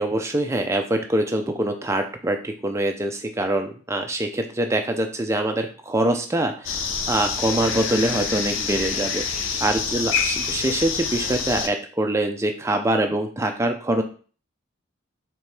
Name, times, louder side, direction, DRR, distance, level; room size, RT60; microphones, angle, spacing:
voice 1, 0.0-9.2 9.6-14.0, right 1 dB, 15° right, 5 dB, 0.4 m, -24 dB
sound 1, 6.6-11.7, left 5 dB, 65° left, 0.5 m, -27 dB
4.5 x 3.4 x 3.3 m, 0.40 s
head